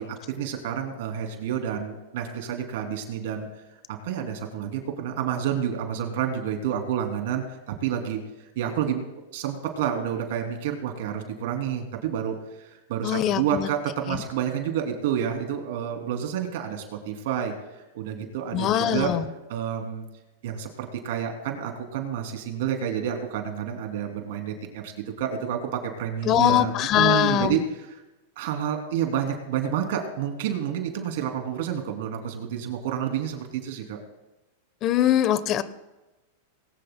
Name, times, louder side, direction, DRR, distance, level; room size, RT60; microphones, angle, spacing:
voice 1, 0.0-3.6 3.9-9.0 9.3-19.1 19.5-20.0 20.4-24.9 25.2-28.0 28.4-34.0, right 9 dB, 65° right, 4 dB, 2.8 m, -29 dB
voice 2, 13.0-13.7 14.1-14.2 18.5-19.2 26.2-27.6 34.8-35.6, left 11 dB, 40° left, 15 dB, 0.9 m, -22 dB
20.0 x 18.5 x 2.2 m, 1.1 s
hypercardioid pair, 115°, 0 cm